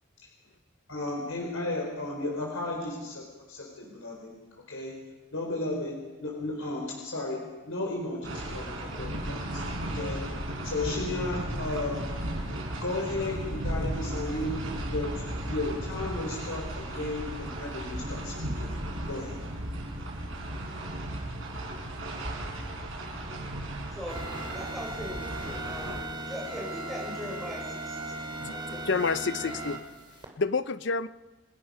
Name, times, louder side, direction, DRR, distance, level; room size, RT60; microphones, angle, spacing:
voice 1, 0.9-4.3 4.7-4.9 5.3-7.4 7.6-10.2 10.6-12.1 12.8-14.6 14.9-18.7 19.0-19.4, left 2 dB, 90° left, -1 dB, 4.4 m, -34 dB
sound 1, 8.2-26.0, right 1 dB, 70° right, 5.2 m, -35 dB
sound 2, 24.1-30.3, right 2 dB, 25° right, 3.1 m, -38 dB
voice 2, 24.5-28.9, left 1 dB, ahead, -3 dB, 6.6 m, -40 dB
voice 3, 28.4-29.8 30.1-31.1, left 4 dB, 55° left, 14 dB, 0.6 m, -29 dB
29.0 x 17.0 x 5.6 m, 1.2 s
head